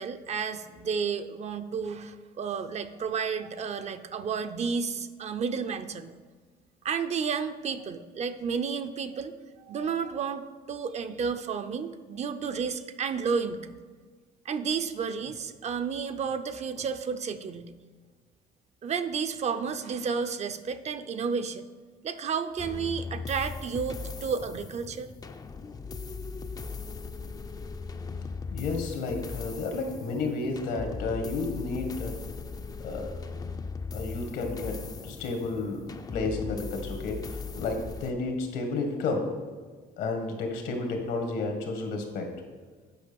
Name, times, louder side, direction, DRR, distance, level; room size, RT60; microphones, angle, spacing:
voice 1, 0.0-6.1 6.8-9.3 9.7-13.8 14.4-17.7 18.8-21.7 22.0-25.1, right 6 dB, 40° right, 10 dB, 0.6 m, -31 dB
sound 1, 22.6-38.1, left 4 dB, 20° left, 0.4 m, -38 dB
voice 2, 28.5-32.2 32.8-33.2 33.9-39.3 40.0-42.3, left 3 dB, 80° left, 4 dB, 1.8 m, -32 dB
9.1 x 5.1 x 5.3 m, 1.5 s
cardioid pair, 110°, 17 cm